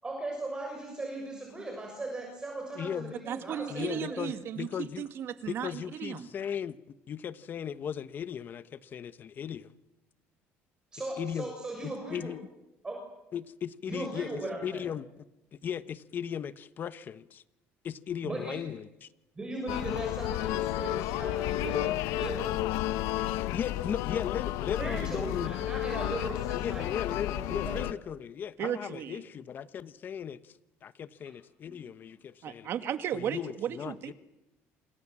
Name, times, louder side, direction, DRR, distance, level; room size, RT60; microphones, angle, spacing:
voice 1, 0.0-4.2 10.9-12.3 12.8-13.0 13.9-14.9 18.2-18.6 19.4-22.6 24.8-27.8 31.2-31.3 31.6-31.8, right 2 dB, 15° right, 1 dB, 6.7 m, -38 dB
voice 2, 2.8-3.1 3.7-5.1 5.5-6.8 7.1-9.7 11.2-11.5 11.8-12.4 13.3-14.3 14.6-15.1 15.6-17.4 17.8-19.1 23.5-25.5 26.5-30.5 30.8-32.7 33.1-34.1, left 8 dB, 40° left, 14 dB, 1.1 m, -37 dB
voice 3, 3.3-6.3 28.6-29.2 32.4-34.1, right 9 dB, 50° right, 9 dB, 2.1 m, -35 dB
sound 1, 19.7-27.9, left 15 dB, 90° left, 0.9 m, -32 dB
28.5 x 27.0 x 7.5 m, 0.98 s
cardioid pair, 135°, 5 cm